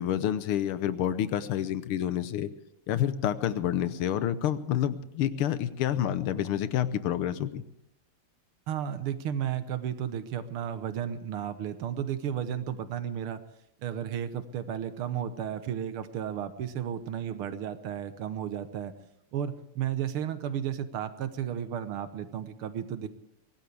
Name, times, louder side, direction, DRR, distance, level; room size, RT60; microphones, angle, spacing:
voice 1, 0.0-2.5 2.9-7.6, left 10 dB, 80° left, 13 dB, 1.8 m, -28 dB
voice 2, 8.7-13.4 13.8-18.9 19.3-23.1, right 9 dB, 80° right, 11 dB, 1.9 m, -33 dB
23.5 x 17.5 x 3.5 m, 0.79 s
omnidirectional pair, 2.4 m